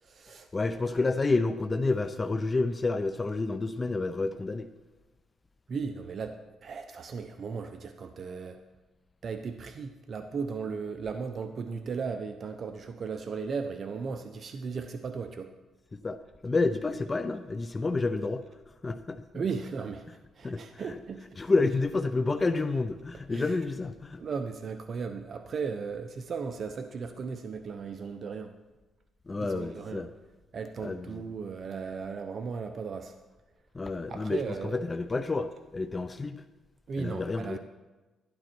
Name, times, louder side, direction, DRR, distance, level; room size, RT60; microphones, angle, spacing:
voice 1, 0.0-0.5 0.9-1.0 5.7-8.6 9.2-15.5 19.3-20.1 20.4-21.3 23.3-23.6 24.2-28.5 29.4-30.0 30.5-33.2 34.1-34.8 36.9-37.6, right 5 dB, 50° right, 7 dB, 0.8 m, -36 dB
voice 2, 0.5-4.7 15.9-16.2 16.4-18.4 18.8-19.2 20.4-20.6 21.4-24.2 29.3-30.1 30.8-31.2 33.7-36.4 37.0-37.6, left 3 dB, 25° left, 11 dB, 0.6 m, -29 dB
12.5 x 12.0 x 4.5 m, 1.2 s
cardioid pair, 90°, 0 cm